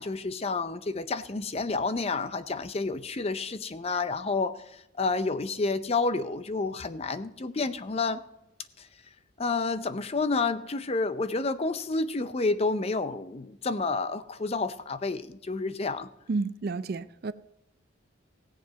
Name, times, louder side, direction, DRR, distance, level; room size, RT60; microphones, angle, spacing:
voice 1, 0.0-8.2 8.8-8.9 9.4-16.1, left 3 dB, 30° left, 0.5 m, -30 dB
voice 2, 16.3-17.3, right 3 dB, 50° right, 0.4 m, -31 dB
17.0 x 7.6 x 5.2 m
head